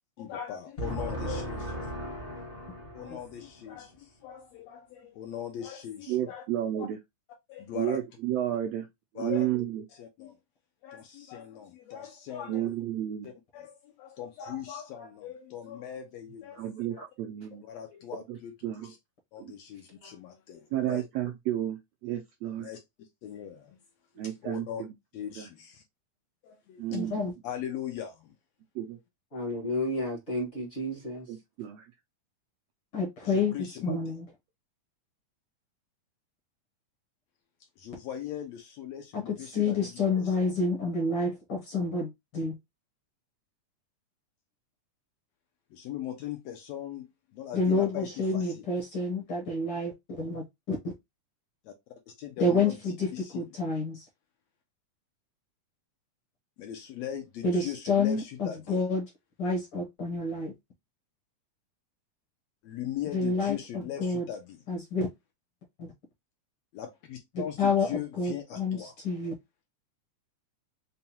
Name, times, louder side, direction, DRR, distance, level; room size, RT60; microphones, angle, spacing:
voice 1, 0.2-1.9 2.3-2.5 2.9-6.4 6.8-6.9 7.5-8.0 9.1-9.5 9.9-10.4 10.8-12.7 13.2-16.7 17.6-18.5 18.8-19.0 19.3-21.0 22.6-23.8 24.2-24.8 25.1-25.8 26.4-28.3 33.2-34.1 37.8-40.5 45.7-48.6 51.6-51.7 52.1-52.8 53.1-53.5 56.6-58.8 62.6-64.6 66.7-69.0, left 10 dB, 75° left, 1.6 m, -40 dB
voice 2, 0.8-3.1 16.9-17.0 29.3-31.3, equal, 40° left, 0.9 m, -34 dB
voice 3, 6.1-7.0 7.7-8.9 9.1-9.8 12.5-13.3 16.6-17.6 18.3-18.4 18.6-18.9 19.4-19.5 20.7-22.7 24.2-24.9 25.4-25.5 26.8-27.2 28.7-29.0 31.3-31.9 33.9-34.0, right 12 dB, 80° right, 1.5 m, -32 dB
voice 4, 26.9-27.3 32.9-33.5 33.8-34.3 39.1-42.6 47.5-50.9 52.4-54.0 57.4-59.1 59.4-60.5 63.1-64.3 64.7-65.1 65.8-65.9 67.3-69.3, left 3 dB, 60° left, 1.5 m, -29 dB
5.4 x 2.2 x 2.8 m
omnidirectional pair, 3.5 m